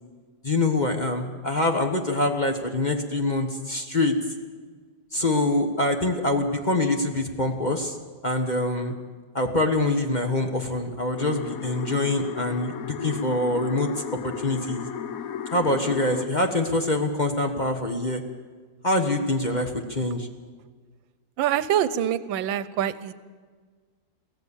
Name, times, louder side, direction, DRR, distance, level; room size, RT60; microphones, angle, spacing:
voice 1, 0.4-4.1 5.1-8.0 8.2-8.9 9.3-13.9 14.2-14.8 15.5-18.2 18.8-20.3, left 2 dB, 25° left, 4 dB, 1.2 m, -25 dB
sound 1, 11.2-16.3, left 8 dB, 55° left, 1.1 m, -34 dB
voice 2, 21.4-23.1, right 10 dB, 85° right, 16 dB, 1.5 m, -25 dB
23.0 x 16.0 x 7.1 m, 1.5 s
omnidirectional pair, 2.0 m